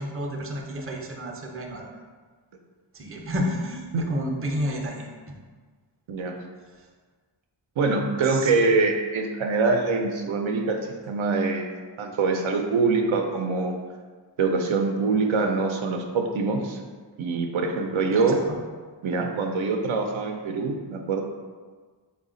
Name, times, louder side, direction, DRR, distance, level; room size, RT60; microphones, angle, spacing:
voice 1, 0.0-1.9 2.9-5.3 8.3-8.5 18.1-18.6, equal, 30° right, 1 dB, 0.5 m, -31 dB
voice 2, 7.8-10.8 11.1-11.7 12.0-13.7 14.4-16.8 17.2-18.4 19.0-21.2, right 4 dB, 85° right, 2 dB, 0.5 m, -24 dB
4.1 x 2.2 x 3.7 m, 1.5 s
wide cardioid pair, 105°, 46 cm